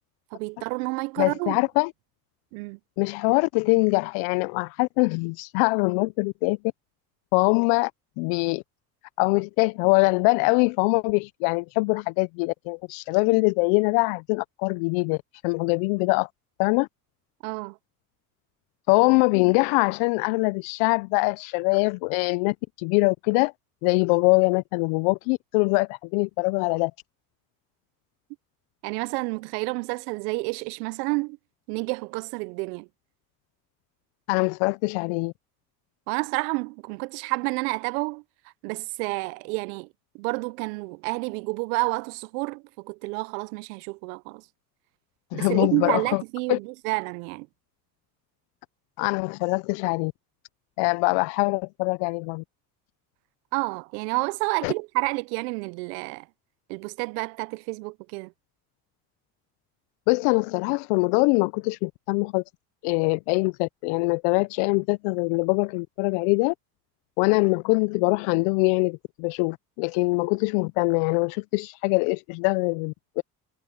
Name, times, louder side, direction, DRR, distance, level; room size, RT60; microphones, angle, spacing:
voice 1, 0.3-1.6 2.5-2.8 17.4-17.8 28.8-31.4 31.7-32.9 36.1-38.2 38.6-39.9 40.2-44.4 45.3-47.5 53.5-56.2 56.7-58.3, right 28 dB, 80° right, 0.8 m, -29 dB
voice 2, 1.2-1.9 3.0-6.6 7.3-7.9 8.2-8.6 9.2-15.2 15.4-16.3 16.6-16.9 18.9-23.5 23.8-26.9 34.3-35.3 45.3-46.2 46.5-46.6 49.0-50.1 50.8-52.4 54.6-54.7 60.1-62.4 62.8-66.5 67.2-73.2, left 30 dB, 75° left, 0.9 m, -23 dB
hypercardioid pair, 55°, 47 cm